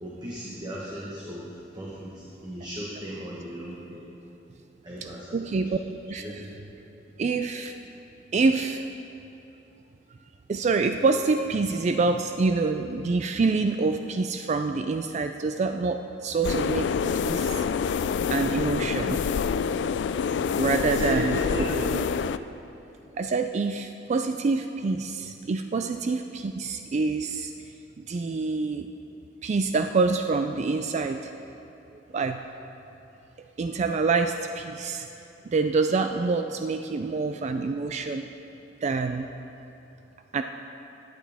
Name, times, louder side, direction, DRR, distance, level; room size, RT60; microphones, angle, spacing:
voice 1, 0.0-4.1 4.8-5.7 6.2-6.5 20.8-21.9, right 1 dB, 25° right, -5 dB, 1.2 m, -36 dB
voice 2, 5.3-5.8 6.1-6.2 7.2-7.7 8.3-8.8 10.5-17.6 18.3-19.2 20.6-21.4 21.9-22.0 23.1-27.5 28.0-28.9 29.4-31.3 32.1-32.4 33.6-35.1 35.4-38.2 38.8-39.3 40.3-40.4, right 4 dB, 40° right, 7 dB, 0.3 m, -26 dB
sound 1, 16.4-22.4, left 6 dB, 70° left, 0.3 m, -26 dB
16.0 x 9.2 x 3.5 m, 2.9 s
head